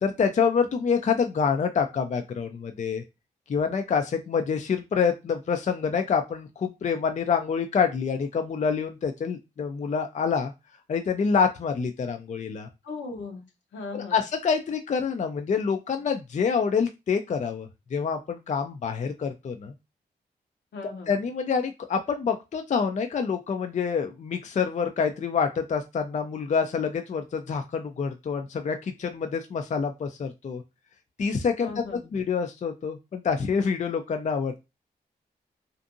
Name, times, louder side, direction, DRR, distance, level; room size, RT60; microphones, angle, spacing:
voice 1, 0.0-3.0 3.5-10.5 10.9-12.7 13.9-19.7 21.1-30.6 31.2-31.8 32.1-34.6, left 6 dB, 40° left, 6 dB, 0.4 m, -27 dB
voice 2, 12.8-13.4 13.7-14.2 20.7-21.2 31.6-32.1, left 3 dB, 80° left, 1 dB, 0.9 m, -37 dB
2.5 x 2.5 x 2.5 m, 0.25 s
supercardioid pair, 40°, 18 cm